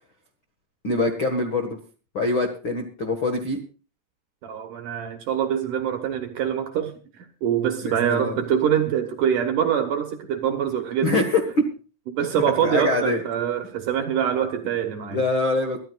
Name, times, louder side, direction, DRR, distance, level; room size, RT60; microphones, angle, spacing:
voice 1, 0.8-1.8 2.1-3.6 7.8-8.4 11.0-11.4 12.6-13.2 15.1-15.8, left 3 dB, 80° left, 1.1 m, -24 dB
voice 2, 4.4-6.9 7.4-11.3 12.1-15.2, right 9 dB, 65° right, 2.2 m, -24 dB
23.5 x 13.0 x 2.4 m
omnidirectional pair, 5.1 m